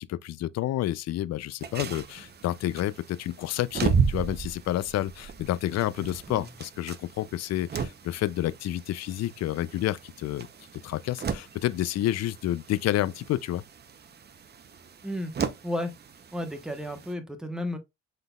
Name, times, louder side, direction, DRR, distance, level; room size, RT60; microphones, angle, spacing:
voice 1, 0.0-10.5 10.8-13.6, left 13 dB, 60° left, 0.4 m, -29 dB
sound 1, 1.6-17.1, right 6 dB, 35° right, 0.7 m, -35 dB
voice 2, 15.6-15.9 16.3-17.8, left 1 dB, ahead, 1.0 m, -33 dB
5.3 x 3.9 x 2.3 m
cardioid pair, 90°, 30 cm